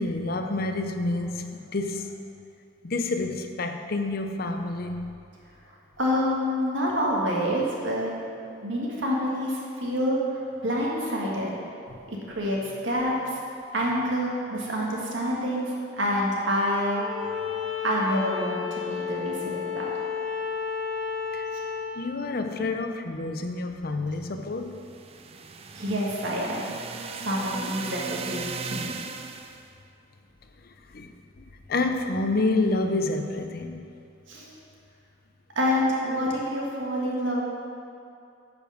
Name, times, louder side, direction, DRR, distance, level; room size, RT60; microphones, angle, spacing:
voice 1, 0.0-2.1 2.8-5.2 11.9-12.0 21.3-21.5 21.9-24.8 30.6-33.9, left 2 dB, 50° left, 6 dB, 0.6 m, -29 dB
voice 2, 6.0-8.1 8.6-11.5 12.1-13.4 13.7-17.0 17.8-19.9 25.7-26.6 27.1-28.9 34.3-34.5 35.5-37.5, equal, 75° right, -3 dB, 1.7 m, -27 dB
Bowed string instrument, 16.9-22.0, left 6 dB, 5° left, 1.2 m, -32 dB
sound 1, 24.7-29.7, right 5 dB, 30° right, 0.4 m, -37 dB
9.7 x 5.1 x 6.4 m, 2.6 s
head